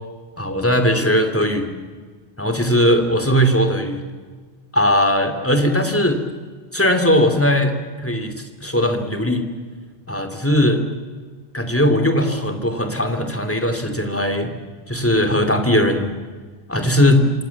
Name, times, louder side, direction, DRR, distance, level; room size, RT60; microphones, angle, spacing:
voice 1, 0.4-1.7 2.4-4.0 4.7-6.2 6.7-8.3 8.6-9.5 10.1-10.8 11.5-14.5 14.9-16.1 16.7-17.2, equal, 10° left, 6 dB, 3.0 m, -18 dB
27.5 x 26.0 x 7.3 m, 1.5 s
omnidirectional pair, 1.1 m